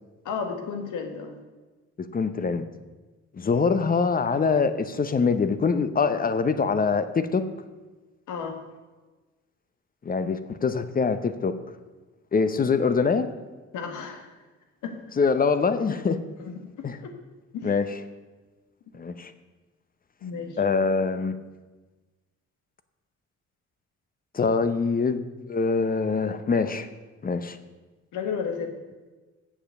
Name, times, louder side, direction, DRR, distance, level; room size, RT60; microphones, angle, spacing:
voice 1, 0.2-1.4 8.3-8.6 13.7-14.3 14.8-15.0 16.4-16.5 17.0-17.1 17.5-17.7 20.2-20.6 28.1-28.7, left 6 dB, 80° left, 5 dB, 1.5 m, -32 dB
voice 2, 2.0-2.7 3.3-7.4 10.0-11.5 12.3-13.3 15.2-16.2 16.8-17.0 17.6-17.9 18.9-19.3 20.6-21.4 24.3-26.9 27.2-27.6, left 5 dB, 30° left, 11 dB, 0.7 m, -24 dB
7.2 x 7.1 x 6.6 m, 1.2 s
cardioid pair, 90°, 30 cm